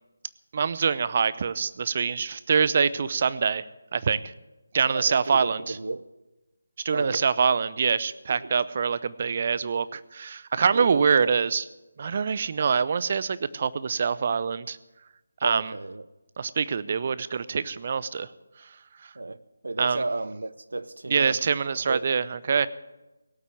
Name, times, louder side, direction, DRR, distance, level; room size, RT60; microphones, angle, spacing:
voice 1, 0.5-3.6 3.9-4.2 4.7-5.8 6.8-11.6 12.0-14.8 15.4-15.7 16.4-18.3 19.8-20.0 21.1-22.7, right 6 dB, 40° right, 16 dB, 0.7 m, -25 dB
voice 2, 4.9-6.1 6.9-7.3 8.3-8.5 10.7-11.3 15.4-16.1 19.1-21.5 21.7-22.1, right 2 dB, 70° right, 16 dB, 0.9 m, -33 dB
18.0 x 8.3 x 9.3 m, 1.0 s
figure-of-eight pair, 155°, 0 cm